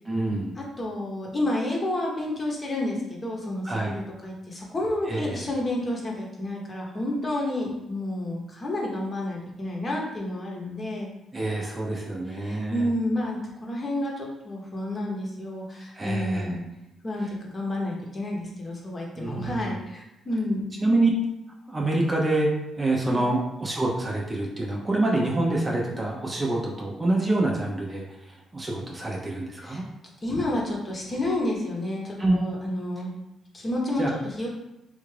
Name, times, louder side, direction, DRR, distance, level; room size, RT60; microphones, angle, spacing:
voice 1, 0.1-0.6 3.6-4.0 5.1-5.4 11.3-12.9 15.9-16.5 19.2-19.7 20.8-21.1 21.7-22.5 22.8-29.8 32.2-32.4 34.0-34.1, right 2 dB, 20° right, -2 dB, 0.6 m, -26 dB
voice 2, 0.8-11.1 12.3-16.6 17.0-20.7 23.0-23.3 29.6-29.8 30.2-33.1 33.5-34.5, left 1 dB, 30° left, -1 dB, 0.9 m, -30 dB
3.4 x 2.4 x 3.3 m, 0.93 s
cardioid pair, 90°, 0 cm